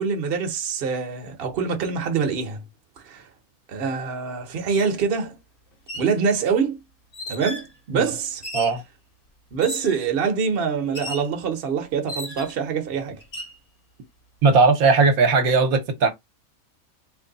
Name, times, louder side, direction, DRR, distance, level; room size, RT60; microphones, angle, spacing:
voice 1, 0.0-2.6 3.0-3.3 3.7-5.4 5.9-6.8 7.3-8.4 9.5-13.2, right 6 dB, 50° right, 0.9 m, -25 dB
sound 1, 4.8-4.9 5.7-6.1 7.1-7.7 8.4-8.8 9.6-10.0 11.0-11.3 12.1-12.7 13.2-13.6, left 1 dB, 40° left, 1.2 m, -35 dB
voice 2, 14.4-16.1, right 4 dB, 70° right, 1.2 m, -18 dB
3.1 x 2.6 x 3.8 m
omnidirectional pair, 1.5 m